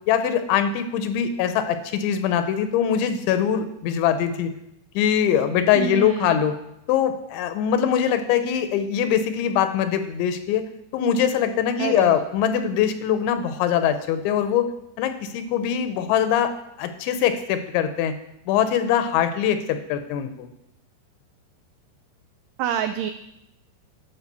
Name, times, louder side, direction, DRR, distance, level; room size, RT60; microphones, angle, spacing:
voice 1, 0.1-4.5 5.0-6.6 6.9-10.6 10.9-14.7 15.0-16.5 16.8-18.1 18.5-20.5, left 9 dB, 80° left, 9 dB, 3.1 m, -22 dB
voice 2, 5.8-6.4 11.8-12.2 22.6-23.1, right 9 dB, 85° right, 9 dB, 2.3 m, -27 dB
12.0 x 5.7 x 6.8 m, 0.82 s
omnidirectional pair, 5.3 m